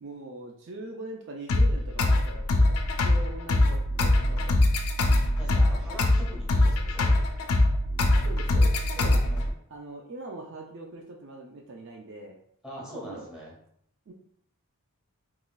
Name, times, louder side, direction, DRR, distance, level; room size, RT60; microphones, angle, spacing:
voice 1, 0.0-2.8 3.0-4.8 8.1-9.2 9.7-12.4 12.8-13.3 14.1-14.2, right 2 dB, 55° right, 0 dB, 0.4 m, -42 dB
sound 1, 1.5-9.5, left 1 dB, 85° left, 0.5 m, -23 dB
voice 2, 5.4-7.3 8.9-9.5 12.6-13.5, equal, 5° right, -6 dB, 1.2 m, -42 dB
3.7 x 3.0 x 2.2 m, 0.67 s
head